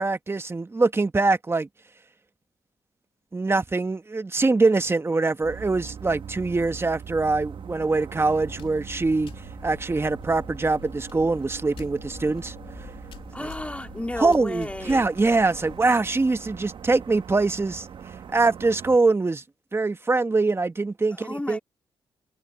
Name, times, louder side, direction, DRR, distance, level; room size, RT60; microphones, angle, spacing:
voice 1, 0.0-1.7 3.3-9.3 9.6-12.5 13.4-13.5 14.2-17.9 18.3-19.4 19.7-21.6, right 3 dB, 25° right, 1.4 m, -23 dB
sound 1, 5.4-19.0, right 7 dB, 65° right, 1.3 m, -41 dB
sound 2, 8.4-15.8, left 8 dB, 75° left, 2.3 m, -45 dB
voice 2, 13.3-15.1 21.1-21.6, left 1 dB, 15° left, 3.1 m, -33 dB
cardioid pair, 60°, 9 cm